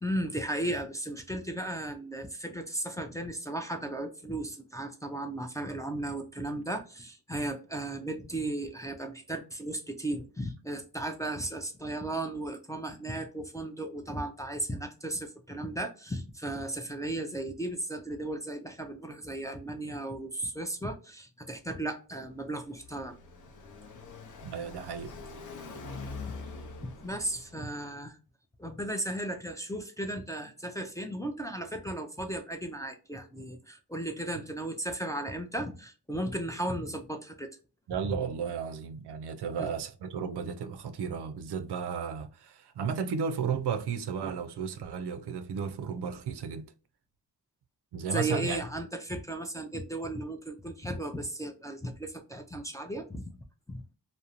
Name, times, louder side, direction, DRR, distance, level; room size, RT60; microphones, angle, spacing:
voice 1, 0.0-23.2 26.3-26.4 26.8-28.2 28.6-37.5 39.6-39.7 48.1-53.4 53.7-53.8, right 1 dB, 10° left, 0.3 m, -35 dB
Car passing by, 22.3-27.9, left 3 dB, 50° left, 0.6 m, -44 dB
voice 2, 24.4-25.1 27.6-27.7 37.9-46.7 47.9-48.6, right 6 dB, 80° right, 0.5 m, -34 dB
2.4 x 2.0 x 2.8 m
cardioid pair, 75°, 40 cm